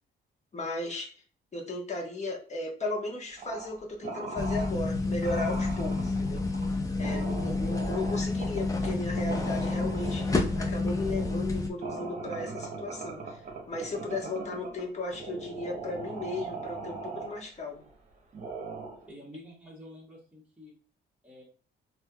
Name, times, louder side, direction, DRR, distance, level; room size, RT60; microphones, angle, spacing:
voice 1, 0.5-1.1 1.5-6.4 7.0-13.4 13.7-17.8, left 2 dB, 35° left, 0 dB, 1.2 m, -35 dB
sound 1, 3.4-3.8 4.0-4.8 5.2-17.9 18.3-19.1, right 3 dB, 40° right, 1.0 m, -40 dB
sound 2, 4.4-11.7, left 3 dB, 15° left, 0.6 m, -29 dB
voice 2, 19.1-20.7 21.2-21.4, left 1 dB, 5° right, -7 dB, 1.3 m, -48 dB
4.1 x 2.7 x 2.3 m, 0.41 s
cardioid pair, 90°, 20 cm